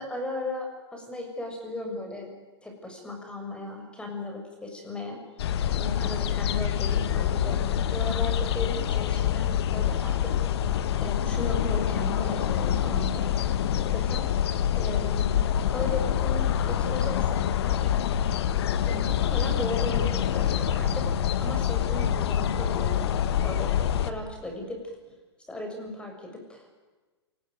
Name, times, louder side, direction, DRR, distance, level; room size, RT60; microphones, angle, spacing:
voice 1, 0.0-2.3 2.6-5.2 5.7-10.4 11.0-13.5 13.7-14.3 14.7-15.4 15.7-17.9 18.8-21.1 21.4-23.1 23.4-23.7 24.0-24.8 25.5-26.6, left 1 dB, 5° left, 3 dB, 6.6 m, -36 dB
sound 1, 5.4-24.1, left 9 dB, 65° left, 1.7 m, -26 dB
27.5 x 19.0 x 9.3 m, 1.3 s
hypercardioid pair, 130°, 14 cm